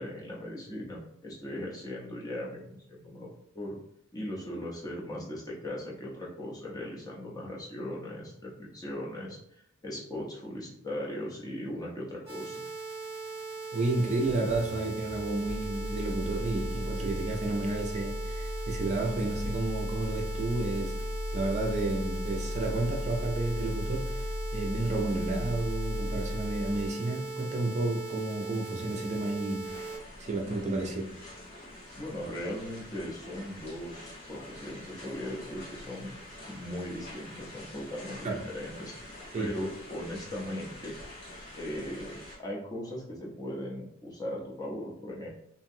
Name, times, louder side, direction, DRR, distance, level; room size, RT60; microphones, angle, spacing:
voice 1, 0.0-3.3 3.5-3.8 4.1-12.6 32.0-36.1 36.5-38.9 39.4-40.9 41.6-45.3, left 1 dB, 15° left, -3 dB, 0.6 m, -38 dB
sound 1, 12.3-30.0, right 4 dB, 15° right, 0.9 m, -40 dB
voice 2, 13.7-21.0 21.3-31.1 38.2-38.4 39.3-39.5, right 2 dB, 35° right, 0 dB, 0.4 m, -31 dB
sound 2, 14.3-26.9, left 2 dB, 75° left, 0.3 m, -36 dB
sound 3, 29.6-42.4, left 1 dB, 50° left, 1.2 m, -47 dB
2.8 x 2.6 x 2.6 m, 0.74 s
head